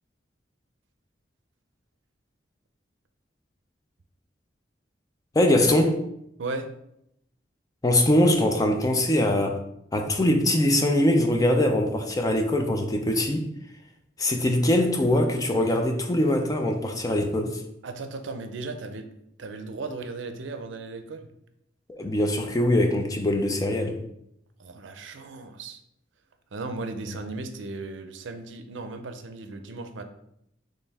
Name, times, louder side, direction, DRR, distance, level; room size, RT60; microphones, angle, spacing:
voice 1, 5.3-6.0 7.8-9.6 9.9-13.5 14.2-17.6 21.9-24.0, left 1 dB, 20° left, 0.4 m, -22 dB
voice 2, 17.8-19.1 19.4-21.3 24.6-25.8 26.5-30.0, right 3 dB, 80° right, 0.5 m, -36 dB
4.4 x 3.2 x 3.4 m
head